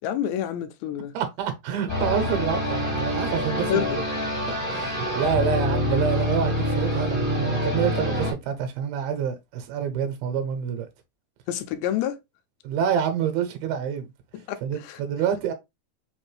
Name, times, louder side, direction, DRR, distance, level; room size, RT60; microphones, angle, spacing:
voice 1, 0.0-1.2 3.7-4.0 11.5-12.2 14.5-15.0, left 10 dB, 85° left, 2.5 m, -28 dB
voice 2, 1.1-3.8 4.5-10.9 12.6-14.1 14.6-15.5, right 8 dB, 80° right, 2.7 m, -27 dB
sound 1, 1.9-8.3, left 1 dB, 15° right, 1.1 m, -26 dB
5.9 x 2.6 x 3.2 m
omnidirectional pair, 4.4 m